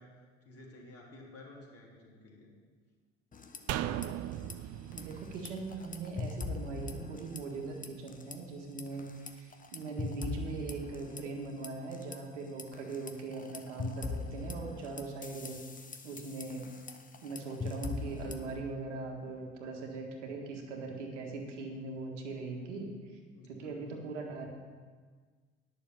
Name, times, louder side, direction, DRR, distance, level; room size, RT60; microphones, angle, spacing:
voice 1, 0.0-2.5 23.3-24.1, left 1 dB, 40° left, -2 dB, 3.4 m, -53 dB
sound 1, 3.3-4.1 4.3-4.5 4.9-7.6 7.8-8.4 8.8-12.2 12.6-18.6, left 3 dB, 20° left, 1.1 m, -41 dB
sound 2, 3.7-7.0 7.3-7.4, right 12 dB, 45° right, 0.6 m, -38 dB
voice 2, 4.9-15.6 16.0-16.7 17.2-23.2 23.5-24.5, right 3 dB, 80° right, 1 dB, 1.8 m, -40 dB
10.5 x 6.5 x 7.3 m, 1.5 s
hypercardioid pair, 60°, 36 cm